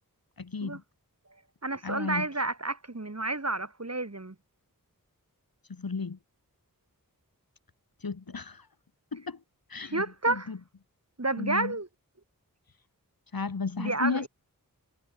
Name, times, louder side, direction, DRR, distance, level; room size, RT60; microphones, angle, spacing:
voice 1, 0.4-0.8 1.8-2.3 5.7-6.2 8.0-8.7 9.1-9.4 9.7-10.6 11.4-11.8 13.3-14.3, left 4 dB, 75° left, 1.6 m, -34 dB
voice 2, 1.6-4.4 9.9-10.5 11.2-11.9 13.8-14.3, right 2 dB, 45° right, 3.4 m, -30 dB
wide cardioid pair, 45°, 36 cm